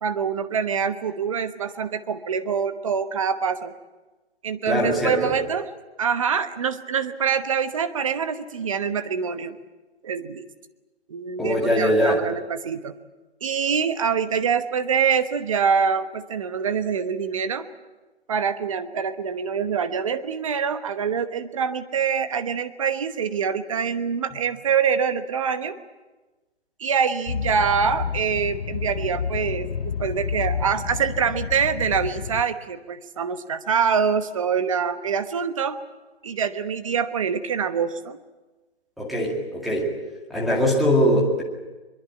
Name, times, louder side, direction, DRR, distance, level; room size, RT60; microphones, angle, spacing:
voice 1, 0.0-3.7 4.4-5.7 6.0-9.6 10.0-10.5 11.1-12.9 13.4-17.7 18.3-25.8 26.8-35.8 36.2-38.2, right 6 dB, 30° right, 10 dB, 1.1 m, -25 dB
voice 2, 4.7-5.3 11.4-12.2 39.0-39.9 40.3-41.4, equal, ahead, -6 dB, 2.2 m, -21 dB
sound 1, 27.3-32.4, left 6 dB, 60° left, 1.3 m, -30 dB
22.5 x 22.5 x 8.8 m, 1.2 s
hypercardioid pair, 170°, 33 cm